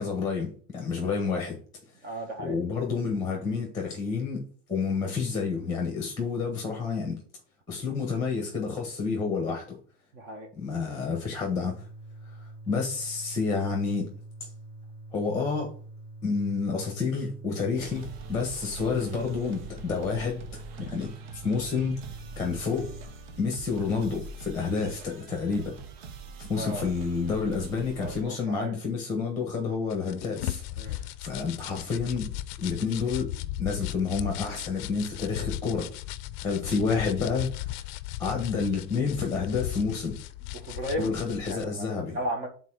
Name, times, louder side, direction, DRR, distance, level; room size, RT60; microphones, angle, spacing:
voice 1, 0.0-1.6 2.4-4.4 4.7-7.2 7.7-9.8 10.5-11.8 12.7-14.1 14.4-14.5 15.1-15.7 16.2-20.4 20.8-21.1 21.4-22.0 22.4-22.9 23.4-25.8 26.4-33.3 33.6-35.9 36.4-37.8 38.2-40.2 41.0-42.2, left 5 dB, 10° left, 1.2 m, -29 dB
voice 2, 2.0-2.6 10.1-10.5 26.6-26.9 28.0-28.8 30.8-31.0 40.5-41.2 41.5-42.5, right 1 dB, 35° right, 1.5 m, -35 dB
sound 1, 11.6-23.0, right 2 dB, 55° right, 3.3 m, -45 dB
sound 2, 17.8-28.2, right 5 dB, 75° right, 1.2 m, -43 dB
sound 3, 29.9-41.6, left 14 dB, 50° left, 0.5 m, -36 dB
6.8 x 4.0 x 4.9 m
cardioid pair, 180°, 30 cm